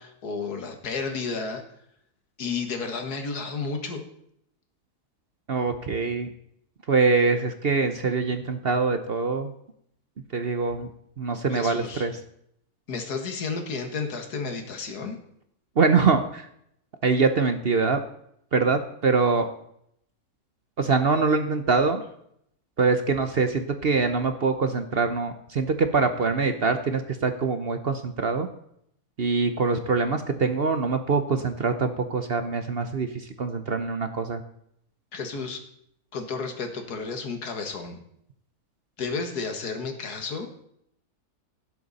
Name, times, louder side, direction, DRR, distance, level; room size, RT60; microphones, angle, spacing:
voice 1, 0.0-1.6 2.4-4.0 11.5-12.1 12.9-15.2 35.1-35.6 36.1-38.0 39.0-40.5, left 4 dB, 80° left, 6 dB, 2.1 m, -32 dB
voice 2, 5.5-6.3 6.9-9.5 10.3-10.9 11.2-12.2 15.8-16.5 17.0-18.0 18.5-19.5 20.8-22.0 22.8-28.5 29.2-34.4, right 4 dB, 50° right, 8 dB, 0.8 m, -24 dB
16.5 x 7.8 x 4.1 m, 0.72 s
omnidirectional pair, 1.6 m